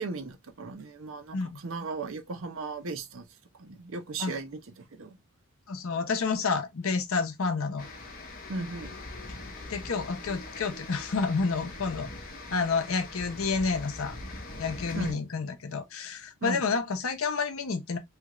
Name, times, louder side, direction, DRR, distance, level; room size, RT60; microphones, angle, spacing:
voice 1, 0.0-3.3 3.6-5.2 8.5-9.0 15.0-15.2 16.4-16.6, right 3 dB, 65° right, 0.6 m, -37 dB
voice 2, 5.7-7.9 9.7-12.1 12.5-14.2 14.6-18.0, left 4 dB, 70° left, 0.7 m, -29 dB
sound 1, 7.8-15.1, left 2 dB, 40° left, 0.9 m, -42 dB
3.3 x 2.4 x 2.9 m
head